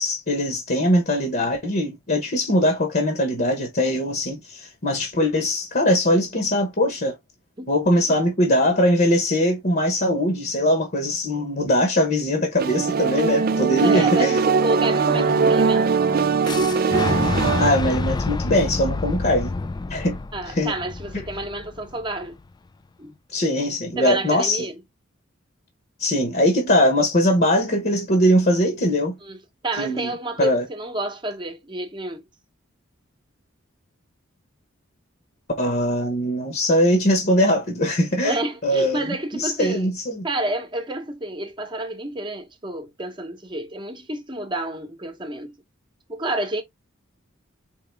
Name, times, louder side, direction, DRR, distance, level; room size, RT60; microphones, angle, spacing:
voice 1, 0.0-7.1 7.7-14.4 15.1-15.5 17.6-19.5 19.9-20.2 20.5-20.7 23.3-24.7 26.0-29.1 29.8-30.1 30.4-30.7 35.6-38.4 38.6-39.0 39.3-40.2, left 1 dB, 45° left, 1.1 m, -21 dB
sound 1, 12.6-17.7, right 5 dB, 45° right, 0.4 m, -20 dB
voice 2, 13.8-16.0 20.3-22.4 23.0-23.1 24.0-24.8 29.2-32.2 38.2-39.9 40.2-45.6 46.1-46.6, right 1 dB, 25° right, 1.0 m, -29 dB
Boom, 16.4-22.3, left 3 dB, 20° left, 0.3 m, -28 dB
4.7 x 3.3 x 3.4 m
head